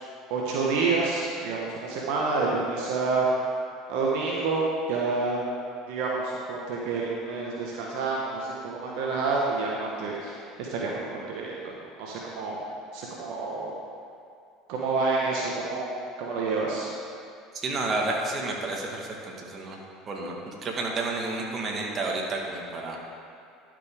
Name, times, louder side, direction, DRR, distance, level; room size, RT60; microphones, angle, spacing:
voice 1, 0.3-3.3 3.9-5.4 5.9-12.6 12.9-13.7 14.7-15.9 16.2-16.9, right 4 dB, 70° right, -3 dB, 1.1 m, -28 dB
voice 2, 17.5-19.8 20.1-23.0, right 2 dB, 40° right, -1 dB, 1.5 m, -31 dB
12.0 x 5.2 x 3.6 m, 2.3 s
hypercardioid pair, 75°, 0 cm